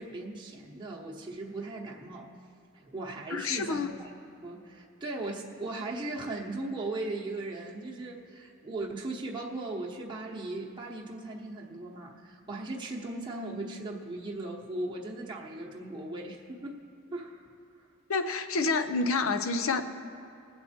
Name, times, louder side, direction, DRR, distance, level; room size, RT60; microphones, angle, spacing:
voice 1, 0.0-2.3 2.7-4.1 4.4-16.8 17.1-17.5, right 2 dB, 20° right, -3 dB, 1.0 m, -38 dB
voice 2, 3.3-3.9 18.1-19.8, left 4 dB, 70° left, 9 dB, 0.7 m, -28 dB
20.5 x 7.8 x 4.3 m, 2.8 s
head